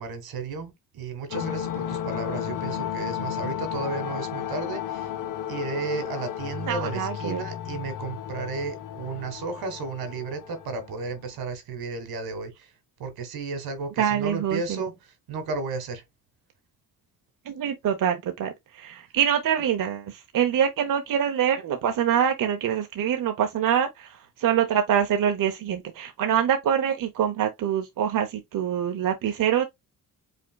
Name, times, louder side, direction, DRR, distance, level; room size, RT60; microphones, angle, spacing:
voice 1, 0.0-5.1 5.5-12.7 13.0-14.9 15.3-16.0, right 3 dB, 85° right, 1.7 m, -33 dB
sound 1, 1.3-11.2, left 10 dB, 60° left, 0.8 m, -33 dB
voice 2, 6.6-7.4 14.0-14.9 17.4-29.6, right 9 dB, 60° right, 0.8 m, -25 dB
5.1 x 3.5 x 2.2 m
cardioid pair, 90°, 36 cm